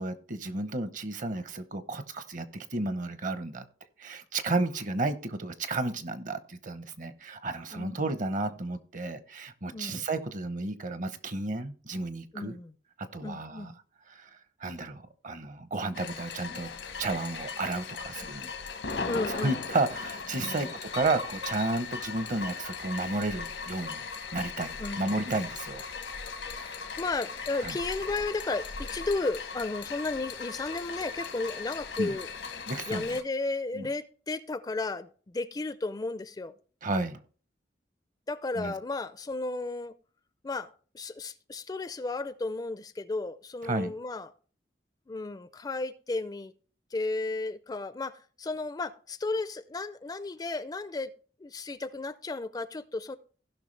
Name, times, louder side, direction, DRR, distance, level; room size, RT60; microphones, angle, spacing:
voice 1, 0.0-2.4 2.7-3.6 4.0-12.6 13.1-13.7 14.1-14.3 14.6-16.7 17.0-18.5 19.3-24.0 24.3-25.8 26.6-26.7 27.6-27.8 32.0-32.2 32.7-33.1 33.7-33.9 36.8-37.2 38.6-38.7 43.7-43.9, right 2 dB, 45° right, 0.8 m, -32 dB
voice 2, 7.7-8.0 9.7-10.1 12.3-12.7 13.2-13.8 19.1-19.6 20.4-20.7 24.8-25.2 27.0-32.3 32.9-36.5 38.3-39.9 40.4-40.7 40.9-44.3 45.1-46.5 46.9-51.1 51.4-53.2, left 3 dB, 20° left, 0.4 m, -34 dB
sound 1, 15.9-33.2, left 5 dB, 85° left, 1.2 m, -38 dB
16.5 x 5.7 x 3.2 m
head